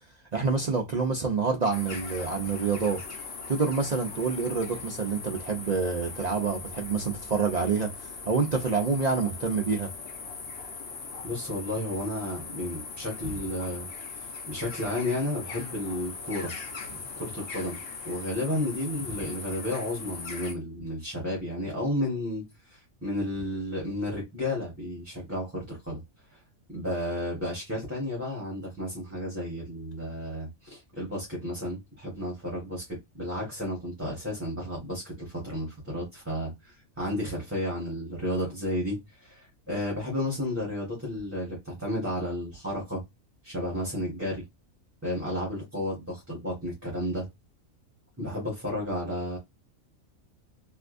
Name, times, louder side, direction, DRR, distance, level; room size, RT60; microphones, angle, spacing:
voice 1, 0.3-3.0 3.5-9.9, right 5 dB, 80° right, 0.3 m, -27 dB
sound 1, 1.7-20.5, left 4 dB, 50° left, 0.9 m, -40 dB
voice 2, 11.2-13.9 14.1-16.5 17.1-17.8 18.0-26.0 26.3-26.4 26.7-43.0 43.4-44.4 45.0-47.3 48.2-49.4, left 1 dB, 10° right, 1.4 m, -32 dB
3.4 x 2.7 x 2.5 m
omnidirectional pair, 1.5 m